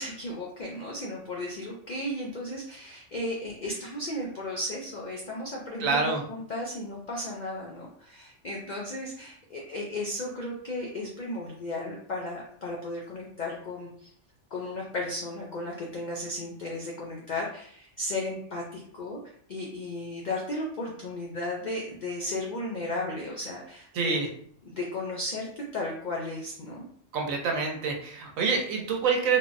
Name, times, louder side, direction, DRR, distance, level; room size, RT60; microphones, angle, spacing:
voice 1, 0.0-14.1 14.5-19.2 19.5-24.2 24.7-26.8, left 1 dB, 75° left, -2 dB, 0.4 m, -35 dB
voice 2, 5.8-6.2 23.9-24.3 27.1-29.4, right 5 dB, 85° right, 2 dB, 1.0 m, -26 dB
3.4 x 2.0 x 2.5 m, 0.63 s
omnidirectional pair, 1.3 m